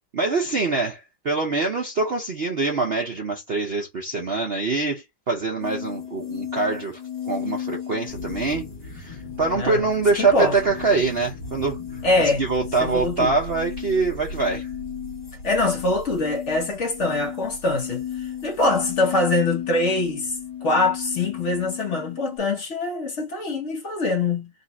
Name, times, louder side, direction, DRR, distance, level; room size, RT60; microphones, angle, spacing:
voice 1, 0.1-7.0 7.3-14.7, right 3 dB, 70° right, 0.5 m, -24 dB
sound 1, 5.6-22.4, left 10 dB, 25° left, 1.2 m, -35 dB
sound 2, 8.0-21.7, left 1 dB, 65° left, 1.8 m, -41 dB
voice 2, 9.5-9.8 10.1-10.5 12.0-12.4 12.8-13.3 15.4-20.3 20.6-24.5, left 2 dB, 45° left, 1.1 m, -23 dB
4.0 x 2.4 x 4.0 m
omnidirectional pair, 2.1 m